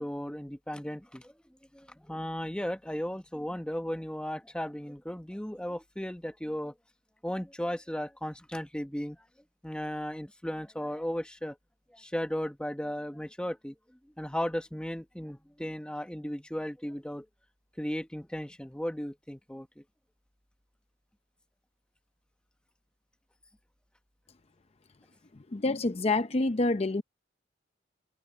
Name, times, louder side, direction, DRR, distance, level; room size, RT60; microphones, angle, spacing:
voice 1, 0.0-1.3 1.7-6.7 7.2-9.2 9.6-11.6 11.9-13.8 14.2-17.3 17.8-19.8, equal, 5° left, 0.9 m, -35 dB
voice 2, 25.5-27.0, left 2 dB, 35° left, 0.6 m, -27 dB
head